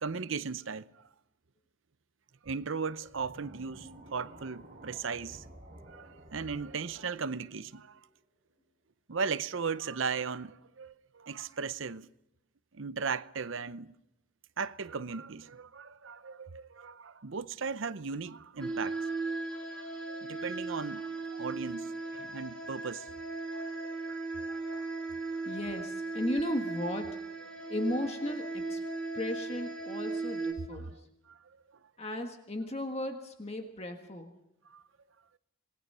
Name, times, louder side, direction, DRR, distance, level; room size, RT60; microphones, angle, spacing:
voice 1, 0.0-0.9 2.4-5.4 5.9-8.0 9.1-12.1 12.7-14.0 14.6-19.6 20.1-23.1 24.4-24.9 30.8-30.9 31.3-31.4 34.7-34.8, right 5 dB, 70° right, 0.7 m, -37 dB
sound 1, 3.0-8.3, right 1 dB, 40° right, 5.5 m, -52 dB
sound 2, 18.6-30.5, right 3 dB, 5° left, 3.9 m, -37 dB
voice 2, 25.4-27.2 27.7-28.8 29.1-31.1 32.0-34.4, left 1 dB, 30° left, 1.5 m, -36 dB
27.0 x 19.5 x 5.5 m
head